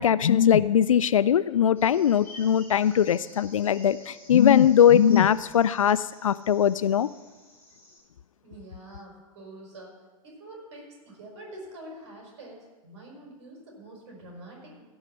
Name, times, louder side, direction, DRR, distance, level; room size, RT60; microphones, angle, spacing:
voice 1, 0.0-7.1, left 9 dB, 70° left, 17 dB, 0.4 m, -20 dB
sound 1, 1.8-8.0, left 1 dB, 10° left, 5.0 m, -51 dB
voice 2, 8.4-9.9 10.2-14.8, right 1 dB, 55° right, 0 dB, 4.6 m, -45 dB
16.5 x 5.6 x 6.7 m, 1.2 s
figure-of-eight pair, 100°, 18 cm